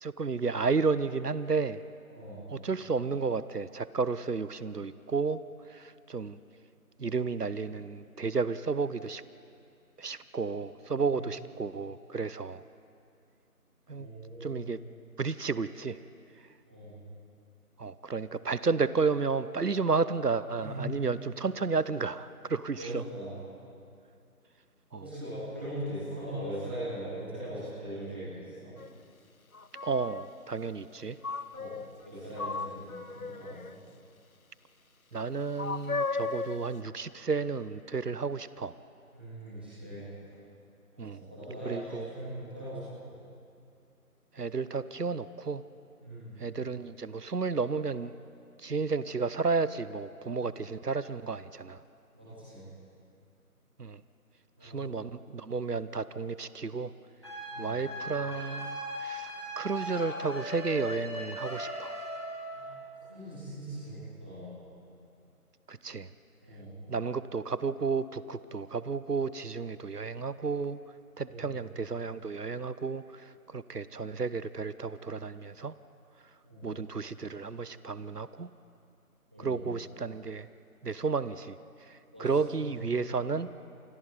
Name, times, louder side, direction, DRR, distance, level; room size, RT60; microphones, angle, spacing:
voice 1, 0.0-1.8 2.5-5.4 5.7-6.4 7.0-9.2 10.0-12.6 13.9-14.1 14.4-14.8 15.2-16.0 17.8-23.0 24.9-25.0 29.8-31.2 35.1-38.7 41.0-41.2 41.7-42.1 44.3-45.6 46.4-48.1 48.6-51.8 53.8-54.0 54.6-56.9 57.6-59.3 59.6-61.9 65.7-66.1 66.9-70.8 71.2-75.7 76.6-78.5 79.4-80.5 80.8-81.6 81.9-83.5, right 4 dB, 85° right, 15 dB, 0.9 m, -32 dB
voice 2, 2.1-2.4 11.1-11.2 13.9-14.6 16.6-16.9 20.5-20.9 22.8-23.3 24.9-28.7 31.5-31.7 32.0-33.7 39.1-40.0 40.9-42.8 46.0-46.4 52.1-52.6 54.6-54.9 57.5-57.7 62.5-62.8 63.1-64.5 66.4-66.7 71.2-71.5 76.4-76.7 79.3-79.6 82.1-82.3 82.5-82.8, right 1 dB, 5° right, -13 dB, 2.9 m, -40 dB
sound 1, 28.8-28.9 29.5-30.3 31.2-32.1 32.4-33.8 35.6-36.7, left 4 dB, 65° left, 0.8 m, -35 dB
sound 2, 57.2-62.7, equal, 20° left, 2.3 m, -38 dB
28.5 x 28.0 x 4.1 m, 2.5 s
figure-of-eight pair, 175°, 46 cm